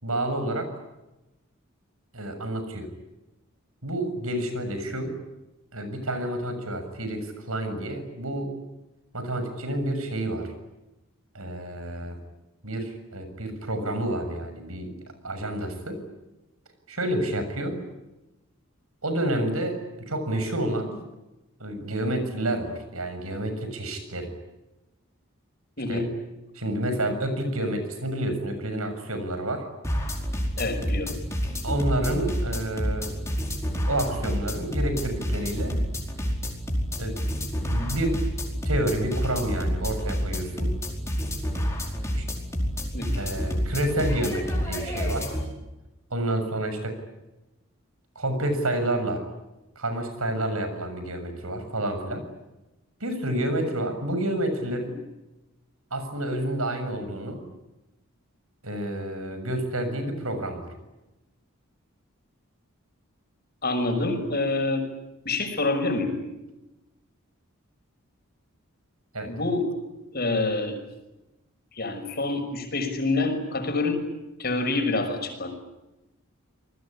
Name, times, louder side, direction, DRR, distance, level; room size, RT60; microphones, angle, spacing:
voice 1, 0.0-0.7 2.1-2.9 3.8-5.1 5.7-8.5 9.1-10.5 11.3-12.2 12.6-14.9 15.2-16.0 16.9-17.8 19.0-19.8 20.1-21.0 21.6-24.3 25.9-26.0 26.5-29.7 31.6-33.3 33.9-35.8 37.0-37.2 37.7-38.2 38.5-40.7 42.1-42.3 43.2-45.3 46.1-47.0 48.2-49.2 49.8-52.2 53.0-55.0 55.9-57.4 58.6-60.7 69.1-69.3, right 1 dB, 90° right, 8 dB, 7.0 m, -29 dB
voice 2, 25.8-26.1 30.6-31.1 42.9-43.1 63.6-64.9 65.2-66.2 69.2-69.6 70.1-70.8 71.7-74.0 74.4-75.5, left 2 dB, 45° left, 6 dB, 6.0 m, -26 dB
sound 1, 29.8-45.5, equal, 15° left, 4.9 m, -29 dB
28.0 x 20.5 x 10.0 m, 1.0 s
head